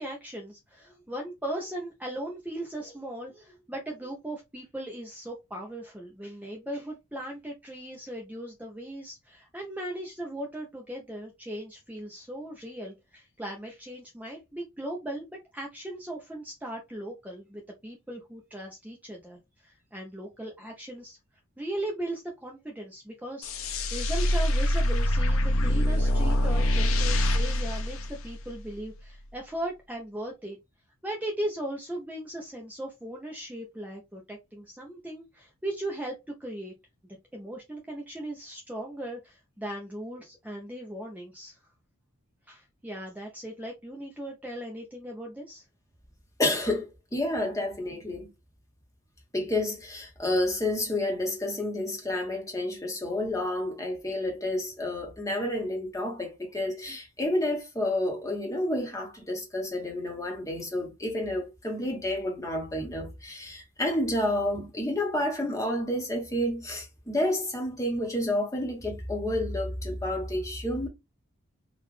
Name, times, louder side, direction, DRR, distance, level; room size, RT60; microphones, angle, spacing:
voice 1, 0.0-21.2 21.6-23.5 23.9-30.6 31.0-36.7 37.3-41.6 42.5-45.6, right 1 dB, 5° right, 0.6 m, -38 dB
sound 1, 23.4-28.8, left 1 dB, 75° left, 0.6 m, -25 dB
voice 2, 46.4-48.3 49.3-70.9, left 1 dB, 15° left, 1.0 m, -30 dB
3.8 x 2.4 x 3.1 m
head